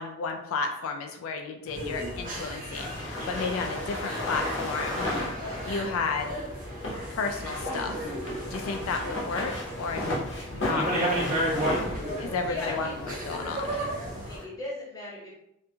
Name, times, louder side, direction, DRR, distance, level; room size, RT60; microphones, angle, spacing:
voice 1, 0.0-5.1 5.6-6.3 7.1-8.0 8.5-11.4 12.2-13.6, left 4 dB, 85° left, 4 dB, 0.3 m, -32 dB
sound 1, 1.7-14.4, left 1 dB, 60° left, 0.7 m, -35 dB
sound 2, 1.7-14.4, right 1 dB, 40° right, 0.7 m, -34 dB
voice 2, 12.2-12.9 13.4-13.9 14.2-15.3, left 2 dB, 20° left, -7 dB, 0.9 m, -38 dB
2.5 x 2.3 x 2.7 m, 0.79 s
head